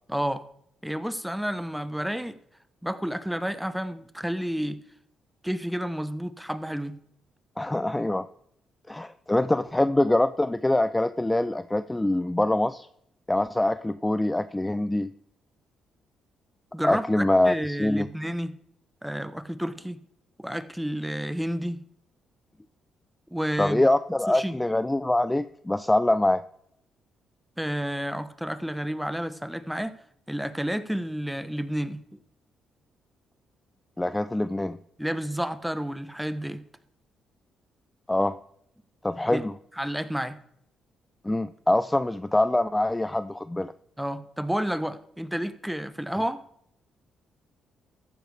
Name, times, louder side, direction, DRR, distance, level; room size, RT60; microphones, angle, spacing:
voice 1, 0.1-0.4 0.8-2.4 2.8-4.8 5.4-7.0 16.7-18.6 19.0-20.0 20.4-21.8 23.3-23.8 24.3-24.5 27.6-30.0 30.3-32.2 35.0-36.6 39.3-39.4 39.8-40.4 44.0-46.4, equal, 5° right, 0.8 m, -30 dB
voice 2, 7.6-8.3 8.9-12.9 13.3-15.1 16.8-18.1 23.6-26.4 34.0-34.8 38.1-38.4 39.0-39.5 41.2-43.7, left 1 dB, 10° left, 0.4 m, -24 dB
14.0 x 10.0 x 3.4 m
supercardioid pair, 70°, 0 cm